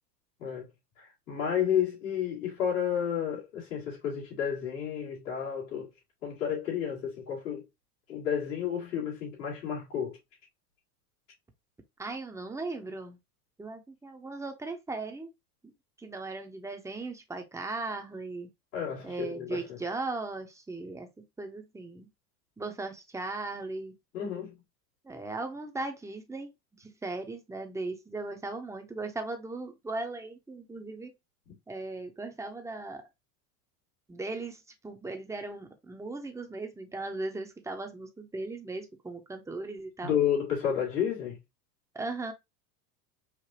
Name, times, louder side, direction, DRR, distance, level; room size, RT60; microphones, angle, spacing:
voice 1, 1.0-5.9 6.2-7.7 8.1-10.2 18.7-19.8 24.1-24.6 31.5-31.6 40.0-41.4, left 8 dB, 90° left, 2.7 m, -31 dB
voice 2, 12.0-13.2 13.6-15.3 15.6-15.7 16.0-18.5 19.0-21.1 21.4-22.1 22.6-23.9 25.0-26.5 26.8-31.1 31.7-33.0 34.1-40.1 41.9-42.3, right 3 dB, 5° right, 0.8 m, -37 dB
5.0 x 2.4 x 2.9 m
hypercardioid pair, 90°, 47 cm